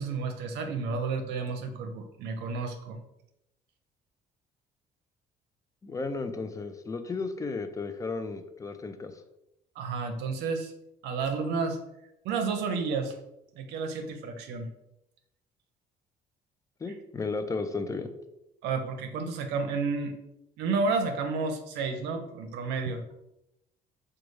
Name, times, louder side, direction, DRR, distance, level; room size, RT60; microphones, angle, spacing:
voice 1, 0.0-3.0 9.8-10.7 11.0-11.8 12.2-13.2 13.6-14.7 18.6-20.1 20.6-23.0, right 4 dB, 85° right, 5 dB, 0.5 m, -31 dB
voice 2, 5.8-9.1 16.8-18.1, left 3 dB, 20° left, 9 dB, 0.4 m, -34 dB
5.0 x 2.3 x 3.1 m, 0.86 s
cardioid pair, 110°, 17 cm